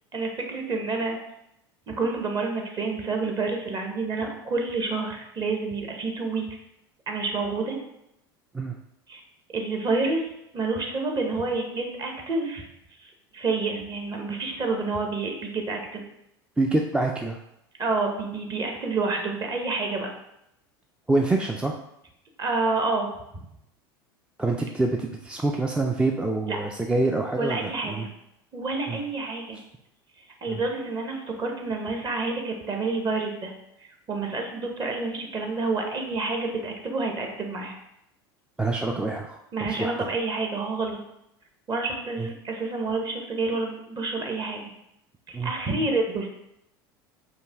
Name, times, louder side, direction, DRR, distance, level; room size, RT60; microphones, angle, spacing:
voice 1, 0.1-1.2 1.9-6.6 7.1-7.8 9.1-9.2 9.5-10.3 10.5-12.7 13.0-16.0 17.8-20.1 22.4-23.1 26.5-26.6 27.4-28.1 28.5-29.6 30.4-33.5 34.1-37.7 39.5-41.0 41.7-44.6 45.3-46.3, right 3 dB, 35° right, 2 dB, 1.0 m, -28 dB
voice 2, 16.6-17.4 21.1-21.7 24.4-28.1 28.9-29.0 30.5-30.6 38.6-39.4 39.8-39.9 42.2-42.3 45.3-45.9, right 2 dB, 10° right, 2 dB, 0.4 m, -26 dB
5.2 x 2.2 x 3.5 m, 0.81 s
hypercardioid pair, 85°, 12 cm